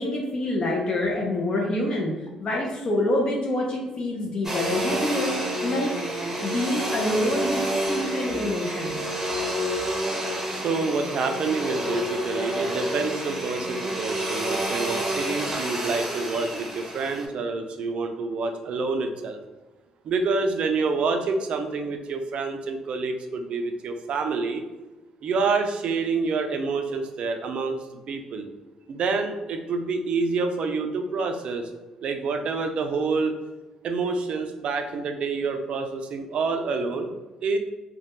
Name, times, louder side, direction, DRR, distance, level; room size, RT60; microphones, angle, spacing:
voice 1, 0.0-2.1 2.4-5.3 5.6-5.9 6.4-9.0, left 1 dB, 50° left, -1 dB, 0.4 m, -26 dB
Domestic sounds home sounds, 4.4-17.3, right 1 dB, 20° right, 0.7 m, -29 dB
voice 2, 10.5-19.4 20.0-24.6 25.2-27.8 28.1-28.5 28.9-31.7 32.0-33.3 33.8-37.1 37.4-37.6, right 4 dB, 65° right, 5 dB, 0.3 m, -27 dB
2.2 x 2.1 x 2.8 m, 1.1 s
supercardioid pair, 70°, 2 cm